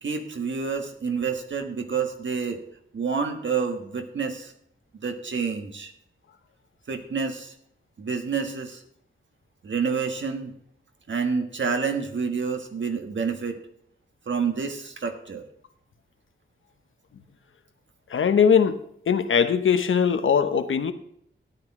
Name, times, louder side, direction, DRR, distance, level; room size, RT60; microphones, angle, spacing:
voice 1, 0.0-2.6 2.9-4.5 5.0-5.9 6.9-7.5 8.0-8.8 9.6-10.5 11.1-13.6 14.3-15.4, right 5 dB, 65° right, 1.4 m, -28 dB
voice 2, 18.1-20.9, left 7 dB, 75° left, 0.8 m, -21 dB
13.0 x 9.6 x 3.7 m
wide cardioid pair, 120°, 21 cm